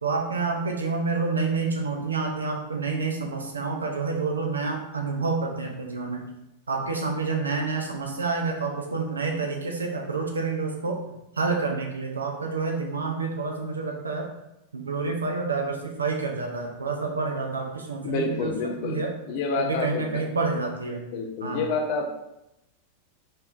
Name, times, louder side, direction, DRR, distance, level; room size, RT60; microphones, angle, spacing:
voice 1, 0.0-6.2 6.7-14.3 14.7-18.5 18.8-19.1 19.6-21.1 21.4-21.6, right 4 dB, 75° right, 1 dB, 0.6 m, -28 dB
voice 2, 18.0-19.0 19.3-20.2 21.1-22.1, left 4 dB, 45° left, 4 dB, 0.6 m, -28 dB
4.4 x 3.1 x 2.6 m, 0.89 s
figure-of-eight pair, 90°, 0 cm